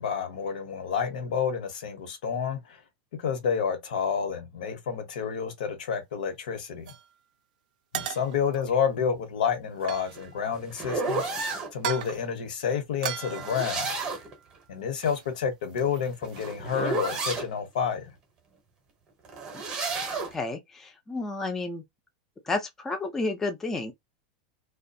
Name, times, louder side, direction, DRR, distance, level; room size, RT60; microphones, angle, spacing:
voice 1, 0.0-2.8 3.2-6.9 7.9-11.3 11.7-13.9 14.7-18.1, left 7 dB, 90° left, 0.9 m, -29 dB
sound 1, 6.9-7.1 7.9-8.6 9.7-10.5 11.7-12.3 13.0-14.5 15.0-15.3 15.5-16.6, right 10 dB, 65° right, 0.3 m, -37 dB
sound 2, 9.9-11.7 13.2-14.4 15.8-17.5 19.2-20.4, right 3 dB, 20° right, 0.7 m, -31 dB
voice 2, 20.3-21.8 22.5-23.9, left 3 dB, 10° left, 0.3 m, -31 dB
2.3 x 2.2 x 2.6 m
supercardioid pair, 175°, 4 cm